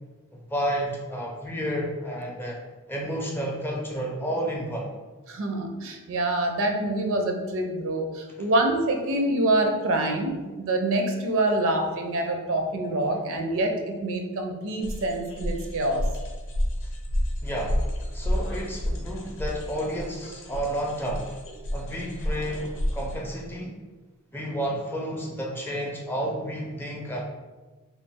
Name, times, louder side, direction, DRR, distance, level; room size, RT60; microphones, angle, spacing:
voice 1, 0.5-2.6 2.9-4.9 8.4-8.5 17.4-21.3 21.7-23.7 24.3-27.2, equal, 10° left, -1 dB, 0.5 m, -31 dB
voice 2, 5.3-16.1, right 1 dB, 65° right, 3 dB, 0.5 m, -26 dB
sound 1, 14.8-23.2, equal, 60° left, 0.6 m, -30 dB
3.1 x 2.3 x 3.5 m, 1.3 s
head